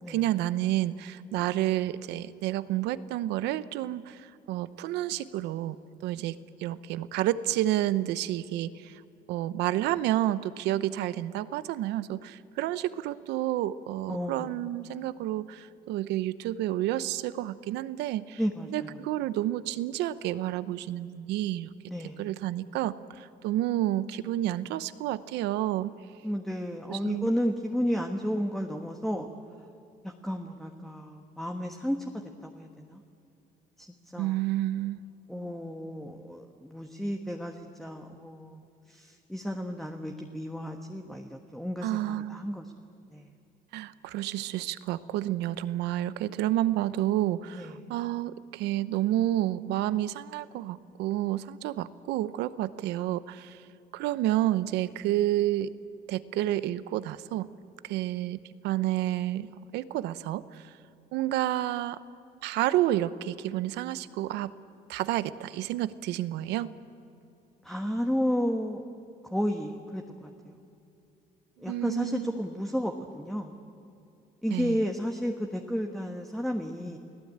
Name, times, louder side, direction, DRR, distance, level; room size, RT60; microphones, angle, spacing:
voice 1, 0.1-5.8 6.0-9.0 9.3-18.4 18.7-21.7 22.2-25.9 26.9-27.3 34.1-35.0 41.8-42.4 43.7-53.6 53.9-55.7 56.1-57.5 57.8-60.7 61.1-62.0 62.4-64.5 64.9-66.7 71.6-72.4 74.5-74.8, right 14 dB, 90° right, 15 dB, 0.9 m, -30 dB
voice 2, 14.1-14.5 18.4-19.0 21.9-22.2 26.2-29.3 30.0-32.1 32.4-33.0 33.8-33.9 34.1-34.4 35.3-42.7 43.1-43.3 47.6-47.8 67.6-68.8 69.2-70.6 71.6-73.6 74.4-77.0, equal, ahead, 3 dB, 1.4 m, -32 dB
29.5 x 18.0 x 8.8 m, 2.6 s
cardioid pair, 110°, 17 cm